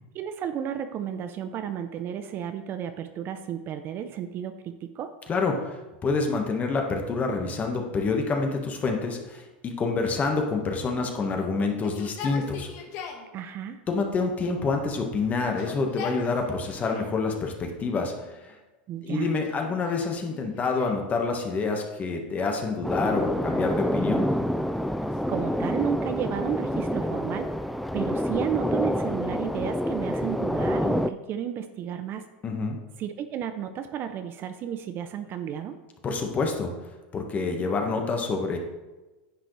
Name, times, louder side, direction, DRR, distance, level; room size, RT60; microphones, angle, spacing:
voice 1, 0.1-5.1 13.3-13.8 18.9-19.3 25.3-27.5 27.9-32.2 33.0-35.8, right 9 dB, 40° right, 9 dB, 0.6 m, -32 dB
voice 2, 5.3-12.7 13.9-18.1 19.0-24.3 32.4-32.8 36.0-36.7 37.1-38.6, left 4 dB, 25° left, 3 dB, 1.5 m, -27 dB
Yell, 10.9-13.3 14.2-14.9 15.3-17.2 17.9-18.6 19.3-21.1 22.4-23.3 24.1-25.9, left 6 dB, 50° left, 1.5 m, -43 dB
sound 1, 22.8-31.1, equal, ahead, 0.3 m, -27 dB
10.0 x 7.7 x 3.3 m, 1.1 s
supercardioid pair, 115°, 6 cm